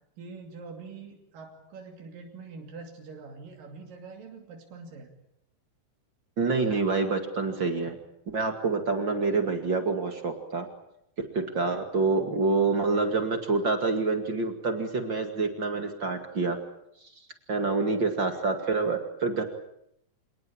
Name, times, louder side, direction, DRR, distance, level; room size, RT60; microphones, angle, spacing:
voice 1, 0.2-5.1, right 4 dB, 90° right, 2 dB, 4.4 m, -44 dB
voice 2, 6.4-8.0 8.3-10.7 11.3-16.6 17.5-19.4, right 3 dB, 40° right, 6 dB, 2.6 m, -27 dB
27.0 x 19.0 x 8.8 m, 0.78 s
omnidirectional pair, 3.8 m